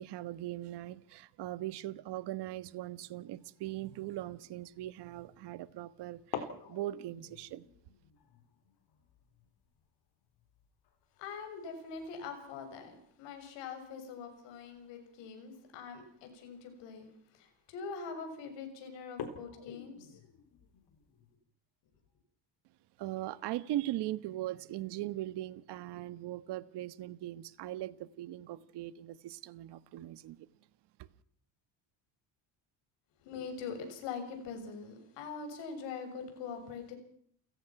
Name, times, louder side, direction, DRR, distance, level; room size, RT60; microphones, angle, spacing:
voice 1, 0.0-7.6 23.0-30.4, right 14 dB, 70° right, 1.4 m, -40 dB
sound 1, 4.7-5.0 6.2-12.6 12.9-13.0 13.4-13.7 14.7-14.9 15.5-15.6 16.2-16.3 16.6-17.0 17.6-17.9 18.3-18.4 19.0-21.4, left 7 dB, 60° left, 4.2 m, -48 dB
voice 2, 11.2-20.2 33.2-36.9, left 5 dB, 85° left, 6.7 m, -43 dB
29.5 x 17.0 x 6.0 m
cardioid pair, 135°, 42 cm